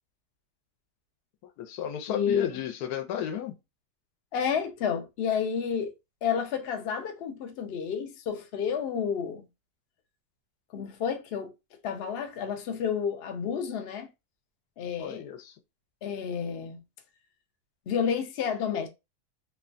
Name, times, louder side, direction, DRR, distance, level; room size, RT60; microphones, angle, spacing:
voice 1, 1.6-3.5 15.0-15.5, left 10 dB, 85° left, 1.1 m, -33 dB
voice 2, 2.1-2.6 4.3-5.9 6.2-9.5 10.7-11.5 11.8-14.1 14.8-15.2 16.0-16.8 17.9-18.9, left 7 dB, 70° left, 0.6 m, -30 dB
3.0 x 2.2 x 2.4 m
omnidirectional pair, 1.6 m